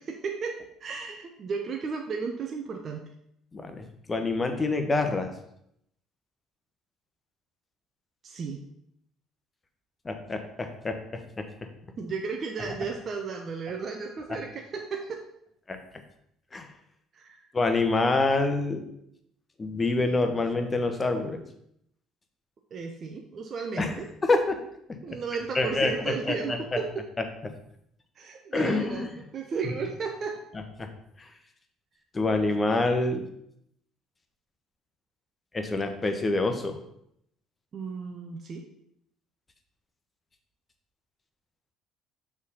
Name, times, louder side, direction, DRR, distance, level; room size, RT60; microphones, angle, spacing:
voice 1, 0.0-3.1 8.2-8.6 12.0-15.2 17.1-17.5 22.7-24.1 25.0-27.0 28.2-30.4 37.7-38.6, right 5 dB, 45° right, 2 dB, 0.8 m, -34 dB
voice 2, 3.5-5.3 10.0-11.5 15.7-15.8 16.5-16.7 17.5-18.8 19.6-21.4 23.8-24.0 24.2-24.6 25.1-25.2 25.5-26.8 27.4-27.5 28.5-29.1 30.8-30.9 32.1-33.2 35.5-36.8, left 2 dB, 25° left, 6 dB, 1.1 m, -26 dB
6.3 x 3.7 x 5.6 m, 0.73 s
hypercardioid pair, 55°, 0 cm